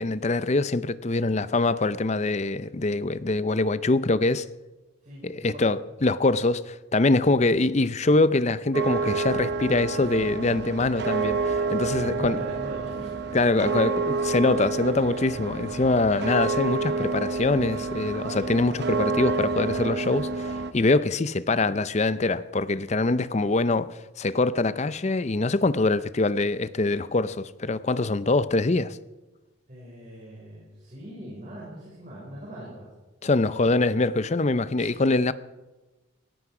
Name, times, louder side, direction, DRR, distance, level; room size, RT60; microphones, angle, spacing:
voice 1, 0.0-4.5 5.2-12.4 13.3-29.0 33.2-35.3, left 2 dB, 35° left, 0.6 m, -24 dB
voice 2, 5.0-5.6 11.9-13.8 29.7-32.9 33.6-34.0 34.8-34.9, equal, 40° right, 5.5 m, -41 dB
sound 1, 8.7-20.7, right 4 dB, 55° right, 0.9 m, -29 dB
18.0 x 15.5 x 4.9 m
head